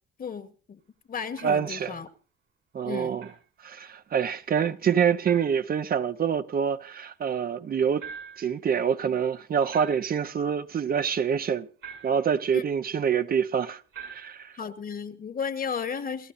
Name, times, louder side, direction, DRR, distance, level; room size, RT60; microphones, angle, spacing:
voice 1, 0.2-0.8 1.1-2.1 2.8-3.1 12.5-12.6 14.5-16.3, left 6 dB, 45° left, 1.4 m, -34 dB
voice 2, 1.4-1.9 2.7-3.3 3.6-8.1 8.4-11.7 12.0-14.5, right 7 dB, 50° right, 0.8 m, -26 dB
sound 1, 1.4-1.7 3.2-3.4 5.2-5.7 8.0-8.6 9.7-10.3 11.8-12.3 13.9-14.5, right 6 dB, 85° right, 7.5 m, -44 dB
29.0 x 15.5 x 2.7 m
cardioid pair, 90°, 20 cm